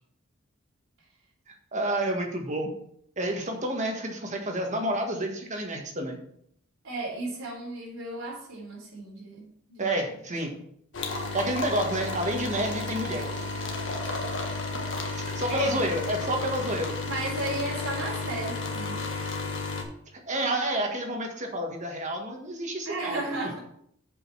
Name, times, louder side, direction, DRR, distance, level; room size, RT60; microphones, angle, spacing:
voice 1, 1.5-2.7 3.2-6.2 9.8-10.5 11.3-13.2 15.1-16.9 20.3-23.4, right 1 dB, 35° right, 3 dB, 1.6 m, -29 dB
voice 2, 6.8-9.9 15.5-15.9 17.1-19.4 22.8-23.6, right 2 dB, 85° right, -3 dB, 4.0 m, -34 dB
sound 1, 10.9-19.8, left 3 dB, 65° left, 1.6 m, -32 dB
7.4 x 5.5 x 5.6 m, 0.68 s
head